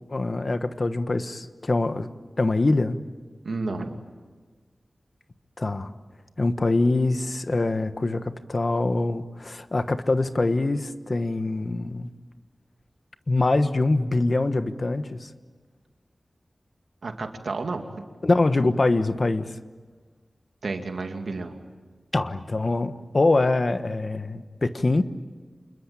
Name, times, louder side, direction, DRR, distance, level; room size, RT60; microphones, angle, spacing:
voice 1, 0.1-2.1 2.4-3.0 5.6-5.9 6.4-12.1 13.3-15.3 18.2-19.6 22.1-25.0, left 2 dB, 50° left, 10 dB, 1.3 m, -24 dB
voice 2, 3.4-4.0 17.0-17.8 20.6-21.6, right 3 dB, 85° right, 4 dB, 2.4 m, -31 dB
28.0 x 21.5 x 8.9 m, 1.4 s
wide cardioid pair, 75°, 0 cm